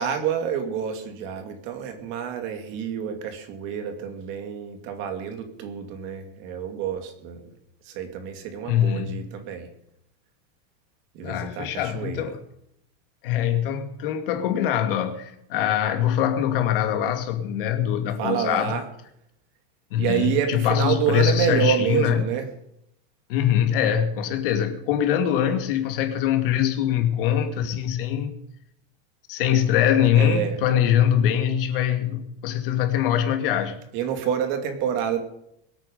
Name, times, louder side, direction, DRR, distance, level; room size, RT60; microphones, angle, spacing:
voice 1, 0.0-7.4 7.8-9.7 11.1-12.3 18.2-18.9 20.0-22.5 30.2-30.6 33.9-35.2, right 8 dB, 40° right, 2.5 m, -28 dB
voice 2, 8.7-9.2 11.2-12.4 13.2-18.8 19.9-22.2 23.3-28.3 29.3-33.8, left 10 dB, 65° left, 2.5 m, -23 dB
22.5 x 9.0 x 5.3 m
supercardioid pair, 170°, 30 cm